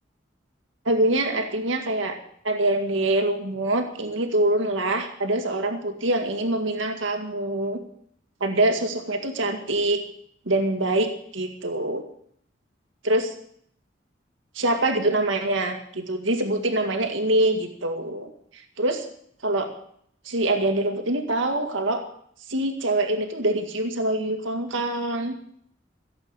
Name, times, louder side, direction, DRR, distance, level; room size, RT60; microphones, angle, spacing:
voice 1, 0.9-2.2 2.4-7.8 8.4-10.0 10.5-12.0 13.0-13.3 14.6-19.1 19.4-19.7 20.3-22.0 22.5-25.4, right 1 dB, 80° right, 4 dB, 2.0 m, -24 dB
16.0 x 8.1 x 8.7 m, 0.66 s
head